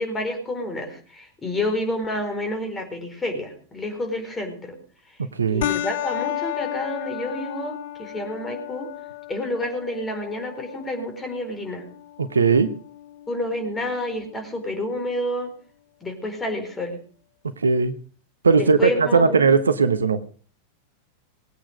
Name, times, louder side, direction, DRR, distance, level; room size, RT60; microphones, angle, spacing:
voice 1, 0.0-4.8 5.5-8.9 9.3-11.8 13.3-15.5 16.0-17.0 18.5-19.5, left 1 dB, 15° left, 6 dB, 4.5 m, -29 dB
sound 1, 5.6-14.6, left 14 dB, 55° left, 0.6 m, -34 dB
voice 2, 12.2-12.8 17.6-17.9 18.4-20.2, right 5 dB, 75° right, 11 dB, 1.0 m, -18 dB
20.5 x 8.8 x 5.1 m, 0.41 s
figure-of-eight pair, 90°, 0 cm